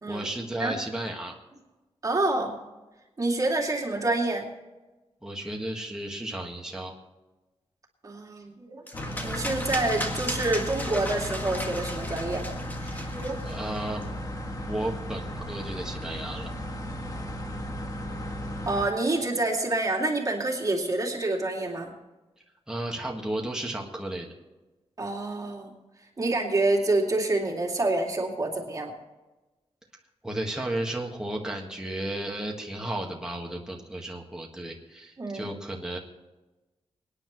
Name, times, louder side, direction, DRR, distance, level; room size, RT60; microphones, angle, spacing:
voice 1, 0.1-1.3 5.2-6.9 13.4-14.0 14.7-16.5 22.7-24.3 30.2-36.0, right 1 dB, 5° right, -1 dB, 1.6 m, -33 dB
voice 2, 2.0-2.6 3.2-4.5 8.0-8.8 9.2-12.4 12.8-13.4 18.7-21.9 25.0-25.7 26.2-28.9 35.2-35.5, right 2 dB, 35° right, 0 dB, 2.5 m, -27 dB
sound 1, 8.9-18.9, equal, 35° left, 1.5 m, -35 dB
sound 2, 8.9-14.1, left 1 dB, 15° left, 1.9 m, -36 dB
24.5 x 10.0 x 3.1 m, 1.1 s
wide cardioid pair, 165°, 11 cm